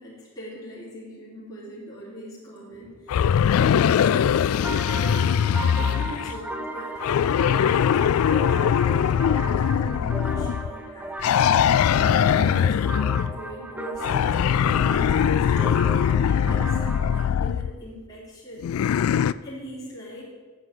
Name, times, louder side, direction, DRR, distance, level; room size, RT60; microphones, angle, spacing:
voice 1, 0.0-4.3 4.9-5.4 5.7-11.7 12.0-20.2, equal, 20° left, -9 dB, 3.4 m, -41 dB
sound 1, 3.1-6.4 7.0-10.7 11.2-13.4 14.0-17.7 18.6-19.3, left 8 dB, 85° left, 0.3 m, -21 dB
sound 2, 4.4-17.3, right 2 dB, 5° right, 0.6 m, -36 dB
9.8 x 7.4 x 7.0 m, 1.4 s
head